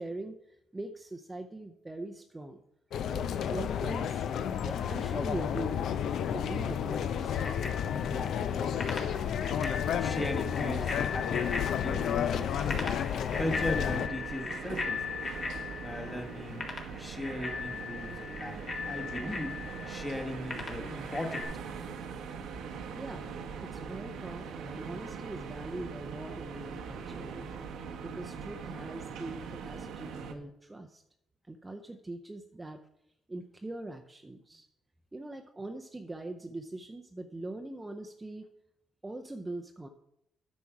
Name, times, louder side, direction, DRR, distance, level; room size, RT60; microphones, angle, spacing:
voice 1, 0.0-2.6 3.1-4.2 4.6-5.9 6.3-7.5 22.9-23.2 23.6-27.5 28.0-31.0 31.4-32.8 33.3-34.7 35.1-38.5 39.0-39.9, right 2 dB, 15° right, 5 dB, 0.6 m, -42 dB
sound 1, 2.9-14.1, left 8 dB, 65° left, 0.6 m, -31 dB
Bicycle bell, 7.4-21.4, left 4 dB, 40° left, 1.9 m, -39 dB
voice 2, 8.1-8.8 9.8-11.5 11.8-15.0 15.8-16.7 17.0-21.5 28.1-28.2, left 1 dB, 15° left, 4 dB, 1.2 m, -38 dB
sound 2, 13.3-30.3, right 6 dB, 80° right, 1.0 m, -41 dB
9.5 x 6.2 x 4.7 m, 0.79 s
cardioid pair, 95°, 0 cm